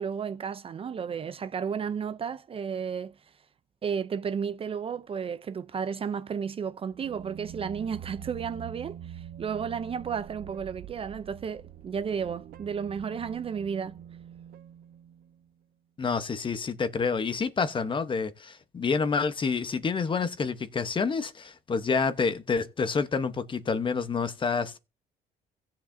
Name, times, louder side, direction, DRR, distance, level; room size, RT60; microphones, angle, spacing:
voice 1, 0.0-3.1 3.8-14.0, right 7 dB, 35° right, 0.5 m, -33 dB
sound 1, 6.9-15.5, right 10 dB, 60° right, 0.9 m, -45 dB
voice 2, 16.0-24.8, left 5 dB, 30° left, 1.0 m, -28 dB
16.5 x 7.4 x 2.7 m
cardioid pair, 110°, 17 cm